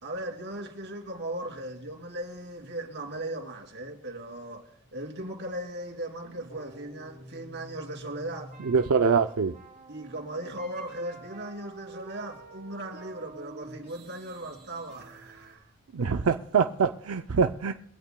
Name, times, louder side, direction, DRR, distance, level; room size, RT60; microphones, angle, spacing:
voice 1, 0.0-8.5 9.9-15.6 16.0-16.1, right 1 dB, 55° right, 2.8 m, -38 dB
sound 1, 6.5-15.6, right 2 dB, 40° right, 3.4 m, -49 dB
voice 2, 8.7-9.5 15.9-17.7, right 5 dB, 90° right, 0.5 m, -24 dB
23.0 x 16.5 x 2.2 m
head